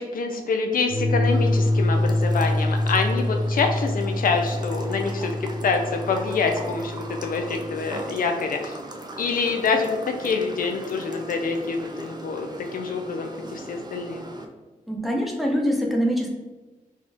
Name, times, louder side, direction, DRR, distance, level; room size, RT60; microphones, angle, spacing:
voice 1, 0.0-8.7 9.2-14.2, left 4 dB, 80° left, 4 dB, 0.5 m, -26 dB
sound 1, 0.9-8.0, left 1 dB, 60° right, 1.1 m, -25 dB
sound 2, 1.3-14.4, right 1 dB, 30° right, 0.6 m, -39 dB
voice 2, 14.9-16.3, equal, ahead, -1 dB, 0.9 m, -24 dB
4.1 x 2.4 x 3.4 m, 1.2 s
cardioid pair, 60°, 14 cm